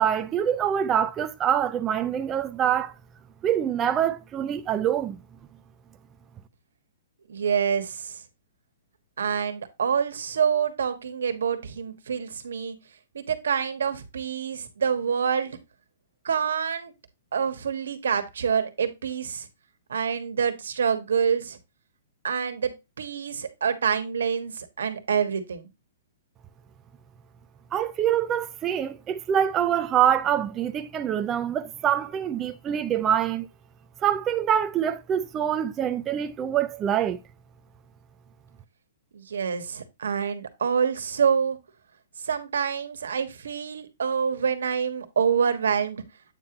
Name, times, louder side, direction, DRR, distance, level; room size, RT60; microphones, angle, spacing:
voice 1, 0.0-2.9 3.4-5.2 27.7-33.5 34.0-37.2, right 9 dB, 20° right, 0.4 m, -25 dB
voice 2, 7.3-8.2 9.2-12.8 13.1-15.6 16.2-16.9 17.3-19.5 19.9-21.6 22.2-25.7 39.1-41.6 42.2-46.0, right 7 dB, 90° right, 1.5 m, -26 dB
8.9 x 3.0 x 5.1 m
hypercardioid pair, 155°, 0 cm